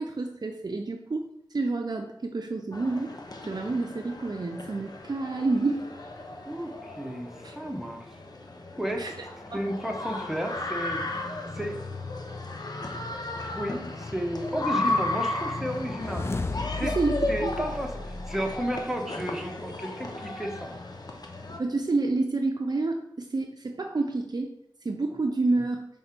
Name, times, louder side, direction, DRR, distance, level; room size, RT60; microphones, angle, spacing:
voice 1, 0.0-3.1 3.5-5.8 7.4-7.5 9.0-9.1 9.5-9.6 16.8-17.6 21.6-24.5 24.8-25.9, right 3 dB, 55° right, 3 dB, 0.6 m, -29 dB
sound 1, 2.7-21.6, left 2 dB, 55° left, 0.9 m, -35 dB
voice 2, 6.5-8.2 8.8-9.1 9.5-11.0 11.5-11.9 13.5-16.3 16.7-17.0 17.3-20.7, equal, 5° right, 2 dB, 1.1 m, -33 dB
sound 2, 15.7-19.0, left 3 dB, 30° left, 0.4 m, -34 dB
5.3 x 3.8 x 5.9 m, 0.78 s
wide cardioid pair, 50°, 8 cm